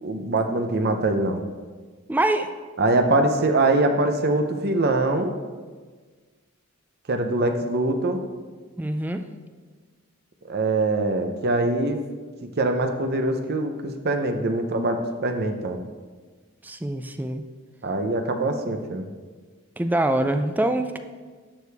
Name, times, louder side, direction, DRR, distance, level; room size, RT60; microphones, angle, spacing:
voice 1, 0.0-1.5 2.8-5.3 7.1-8.2 10.5-12.0 12.6-15.8 17.8-19.1, right 2 dB, 50° right, 6 dB, 0.7 m, -23 dB
voice 2, 2.1-2.5 8.8-9.3 16.6-17.4 19.8-21.0, right 1 dB, 10° right, 8 dB, 0.4 m, -24 dB
11.5 x 6.5 x 3.4 m, 1.4 s
head